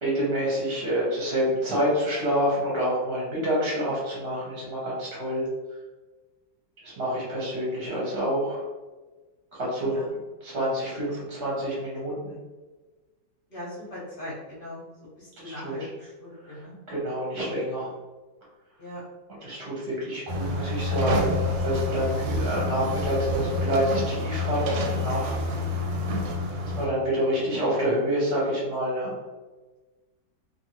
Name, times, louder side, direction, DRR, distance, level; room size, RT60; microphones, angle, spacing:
voice 1, 0.0-5.4 6.8-8.6 9.5-10.0 10.4-12.3 15.4-15.9 16.4-16.6 16.9-17.9 19.4-25.4 26.8-29.1, equal, 45° right, -6 dB, 0.9 m, -27 dB
voice 2, 9.8-10.1 13.5-14.9 15.2-16.7 18.8-19.0, left 1 dB, 45° left, -8 dB, 0.7 m, -40 dB
sound 1, 20.3-26.9, left 2 dB, 85° right, 1.3 m, -28 dB
2.7 x 2.6 x 2.9 m, 1.2 s
omnidirectional pair, 2.0 m